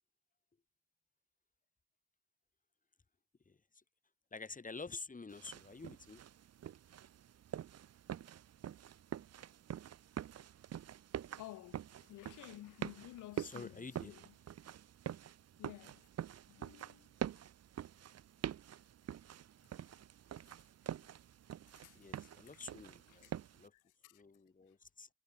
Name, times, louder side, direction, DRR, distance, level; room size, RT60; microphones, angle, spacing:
voice 1, 3.4-3.8 4.3-6.2 13.4-14.2 21.9-23.7 24.1-25.1, left 4 dB, 25° left, 6.6 m, -49 dB
sound 1, 5.3-23.7, right 10 dB, 55° right, 1.3 m, -46 dB
voice 2, 11.4-14.2 15.6-16.1 16.5-17.5 20.5-20.6 21.7-22.7 23.1-23.3 23.7-24.2, left 16 dB, 90° left, 5.0 m, -54 dB
cardioid pair, 90°, 30 cm